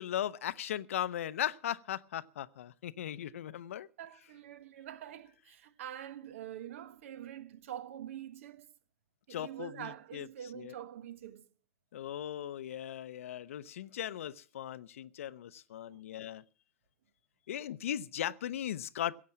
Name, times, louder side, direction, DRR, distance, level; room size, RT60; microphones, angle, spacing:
voice 1, 0.0-3.9 9.3-10.3 10.5-10.7 11.9-16.4 17.5-19.2, left 11 dB, 70° left, 0.7 m, -38 dB
voice 2, 4.0-8.7 9.3-11.5 15.9-16.0, right 10 dB, 65° right, 1.4 m, -45 dB
16.0 x 8.5 x 7.4 m
hypercardioid pair, 95°, 8 cm